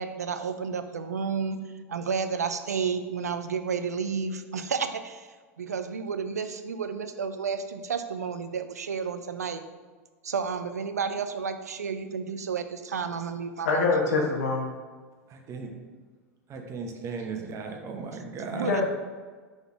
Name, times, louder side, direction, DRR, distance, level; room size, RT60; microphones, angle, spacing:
voice 1, 0.0-5.3 5.6-9.6 10.2-13.9 18.5-18.8, right 6 dB, 85° right, 0.5 m, -31 dB
voice 2, 13.6-14.7 18.5-18.8, left 3 dB, 70° left, 1.2 m, -25 dB
voice 3, 15.3-15.7 16.5-18.8, right 4 dB, 35° right, 0.9 m, -36 dB
5.4 x 3.9 x 4.6 m
hypercardioid pair, 90°, 8 cm